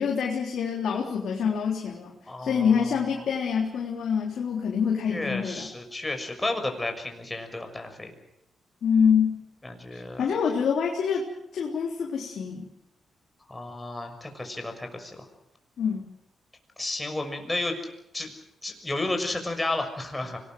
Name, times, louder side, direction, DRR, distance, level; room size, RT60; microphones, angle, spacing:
voice 1, 0.0-2.1 2.4-5.7 8.8-9.4 9.9-11.3 11.5-12.7 15.8-16.0, left 6 dB, 70° left, 0 dB, 3.6 m, -26 dB
voice 2, 2.3-2.9 5.1-8.1 9.6-10.2 13.5-15.2 16.8-17.8 18.1-18.3 18.6-20.4, left 2 dB, 15° left, 5 dB, 6.4 m, -32 dB
25.5 x 20.0 x 7.8 m, 0.81 s
cardioid pair, 80°, 0 cm